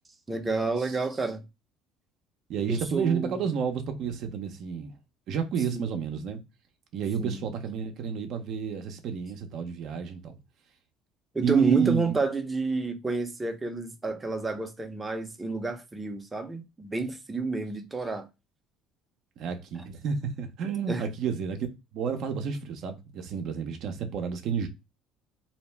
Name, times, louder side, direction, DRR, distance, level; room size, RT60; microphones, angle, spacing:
voice 1, 0.3-1.4 2.7-3.4 5.7-5.9 7.2-7.5 11.3-18.3 20.9-21.1, right 3 dB, 15° right, 0.6 m, -30 dB
voice 2, 2.5-5.0 5.3-6.4 6.9-10.4 11.4-12.2 19.4-21.6 21.9-24.7, right 7 dB, 60° right, 0.5 m, -30 dB
2.7 x 2.1 x 3.2 m
supercardioid pair, 100°, 0 cm